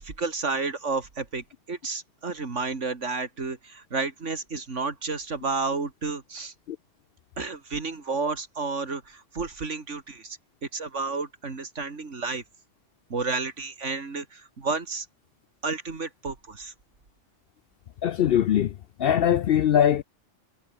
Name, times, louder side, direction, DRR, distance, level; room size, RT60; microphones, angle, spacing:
voice 1, 0.0-6.5 7.4-10.4 10.7-12.4 13.1-15.1 15.6-16.7, right 4 dB, 70° right, 2.8 m, -31 dB
voice 2, 18.0-18.7 19.0-20.0, left 10 dB, 60° left, 0.6 m, -21 dB
omnidirectional pair, 1.3 m